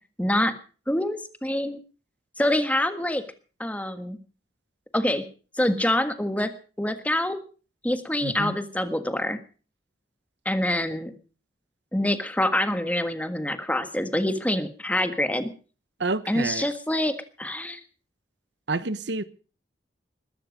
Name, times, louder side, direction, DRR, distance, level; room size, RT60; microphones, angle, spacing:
voice 1, 0.2-0.5 0.9-1.8 2.4-3.2 3.6-4.2 4.9-5.2 5.6-6.5 6.8-7.4 7.8-9.4 10.4-11.1 11.9-15.5 16.3-17.8, left 1 dB, 10° left, 1.6 m, -26 dB
voice 2, 8.2-8.5 16.0-16.7 18.7-19.2, right 3 dB, 75° right, 1.0 m, -28 dB
21.0 x 12.5 x 5.2 m
head